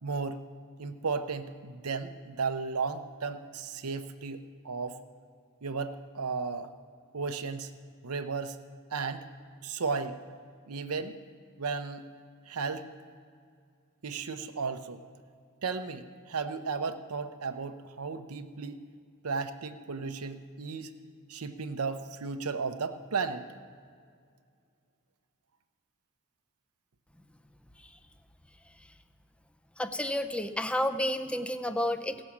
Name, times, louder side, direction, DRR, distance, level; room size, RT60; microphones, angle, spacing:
voice 1, 0.0-0.4 0.8-4.4 4.6-5.0 5.6-6.7 7.1-7.7 8.0-8.6 8.9-9.3 9.6-10.2 10.7-11.2 11.6-12.1 12.5-12.9 14.0-15.0 15.6-18.9 19.2-20.9 21.3-23.4, right 4 dB, 80° right, 9 dB, 0.7 m, -34 dB
voice 2, 29.8-32.2, left 1 dB, 5° left, 10 dB, 0.5 m, -30 dB
17.0 x 6.3 x 7.2 m, 2.2 s
head